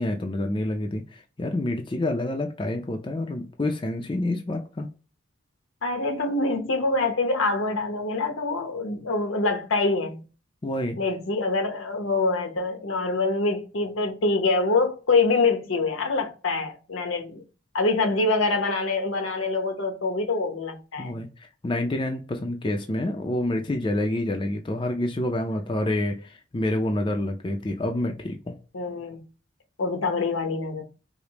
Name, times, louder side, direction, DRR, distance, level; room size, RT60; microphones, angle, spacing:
voice 1, 0.0-4.9 10.6-11.0 21.0-21.3 21.6-28.5, left 1 dB, 25° left, 0.4 m, -28 dB
voice 2, 5.8-10.2 11.0-17.4 17.7-21.2 28.7-29.2 29.8-30.8, left 3 dB, 80° left, 0.9 m, -25 dB
4.9 x 2.0 x 2.9 m
head